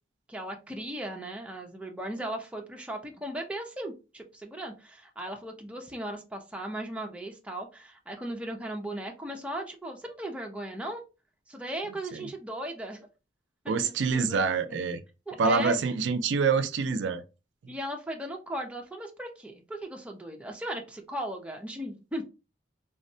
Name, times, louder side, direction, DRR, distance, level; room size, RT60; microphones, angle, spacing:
voice 1, 0.3-11.0 11.5-13.1 13.6-14.4 14.7-14.8 15.3-15.8 17.7-22.2, right 1 dB, 5° right, 0.4 m, -37 dB
voice 2, 13.7-15.0 15.4-17.2, right 4 dB, 75° right, 0.4 m, -26 dB
3.5 x 2.1 x 2.6 m
head